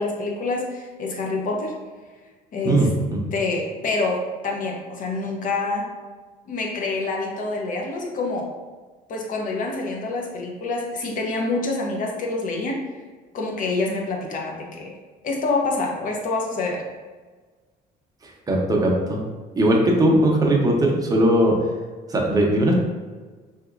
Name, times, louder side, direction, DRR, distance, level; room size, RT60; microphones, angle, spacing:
voice 1, 0.0-1.7 2.5-2.9 3.3-5.9 6.5-8.5 9.1-12.8 13.3-15.0 15.2-16.9, left 3 dB, 50° left, 0 dB, 0.7 m, -26 dB
voice 2, 2.6-3.3 18.2-19.2 19.5-21.5 22.1-22.7, right 1 dB, 20° right, -1 dB, 0.7 m, -19 dB
3.4 x 2.9 x 2.4 m, 1.4 s
cardioid pair, 110°, 17 cm